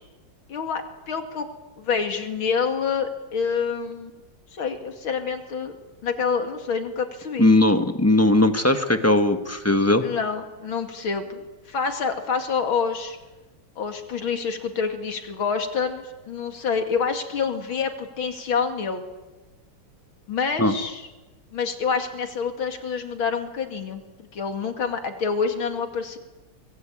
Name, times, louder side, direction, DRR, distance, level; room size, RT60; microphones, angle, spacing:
voice 1, 0.5-1.5 1.8-4.1 4.5-5.7 6.0-7.5 10.0-13.2 13.8-19.0 20.3-21.0 21.5-24.0 24.3-26.2, left 5 dB, 65° left, 6 dB, 3.1 m, -27 dB
voice 2, 7.4-10.0 20.6-20.7, left 2 dB, 10° left, 8 dB, 0.8 m, -19 dB
24.5 x 21.5 x 8.8 m, 1.2 s
omnidirectional pair, 2.4 m